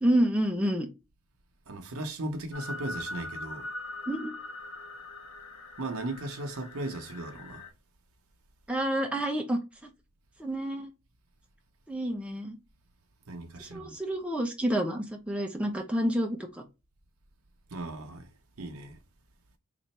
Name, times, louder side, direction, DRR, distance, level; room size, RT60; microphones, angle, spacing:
voice 1, 0.0-0.9 4.1-4.3 8.7-9.6 10.4-10.9 11.9-12.6 13.6-16.6, right 1 dB, 5° right, 0.6 m, -28 dB
voice 2, 1.7-3.7 5.8-7.6 13.3-14.0 17.7-18.3 18.6-19.0, right 2 dB, 70° right, 0.8 m, -37 dB
sound 1, 2.5-7.7, left 2 dB, 80° left, 0.8 m, -42 dB
3.3 x 2.5 x 4.2 m
head